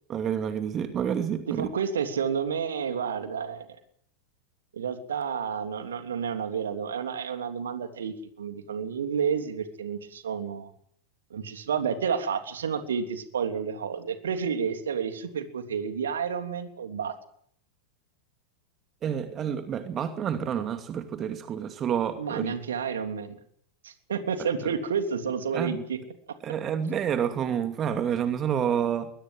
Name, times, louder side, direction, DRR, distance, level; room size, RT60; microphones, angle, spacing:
voice 1, 0.1-1.7 19.0-22.6 24.6-24.7 25.5-25.8 26.4-29.1, right 8 dB, 25° right, 8 dB, 2.5 m, -29 dB
voice 2, 1.6-3.7 4.7-10.7 11.3-17.1 22.2-23.4 23.8-26.0, right 6 dB, 65° right, 7 dB, 3.2 m, -30 dB
22.0 x 21.5 x 7.8 m, 0.64 s
figure-of-eight pair, 90°, 0 cm